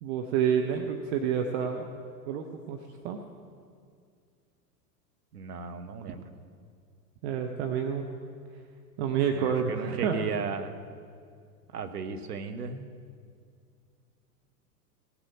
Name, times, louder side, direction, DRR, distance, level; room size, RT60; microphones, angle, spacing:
voice 1, 0.0-1.8 2.3-3.2 6.1-6.2 7.2-8.0 9.0-10.2, right 8 dB, 45° right, 5 dB, 0.9 m, -29 dB
voice 2, 5.3-6.3 9.3-10.7 11.7-12.9, right 5 dB, 75° right, 7 dB, 1.1 m, -35 dB
17.5 x 7.0 x 6.3 m, 2.2 s
figure-of-eight pair, 90°, 47 cm